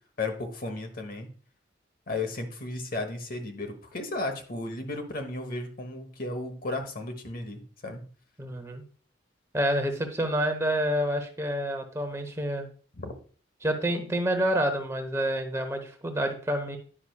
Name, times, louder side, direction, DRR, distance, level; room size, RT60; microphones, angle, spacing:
voice 1, 0.2-1.3 2.1-8.1 13.0-13.1, left 2 dB, 50° left, 6 dB, 1.0 m, -34 dB
voice 2, 8.4-8.8 9.5-12.7 13.6-16.8, right 1 dB, 15° right, 5 dB, 0.9 m, -28 dB
9.8 x 5.9 x 2.3 m, 0.43 s
head